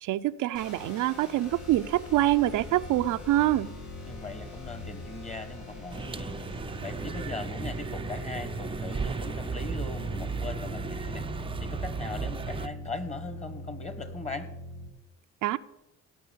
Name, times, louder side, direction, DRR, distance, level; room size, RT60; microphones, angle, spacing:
voice 1, 0.0-3.7 15.4-15.6, right 14 dB, 80° right, 10 dB, 0.6 m, -25 dB
sound 1, 0.5-14.9, left 1 dB, 75° left, 4.5 m, -43 dB
sound 2, 1.5-13.5, left 3 dB, 45° left, 3.2 m, -49 dB
voice 2, 4.1-14.5, left 3 dB, 20° left, 11 dB, 1.6 m, -39 dB
sound 3, 5.9-12.7, right 5 dB, 20° right, 0.5 m, -35 dB
17.5 x 6.1 x 8.5 m, 0.91 s
cardioid pair, 90°, 30 cm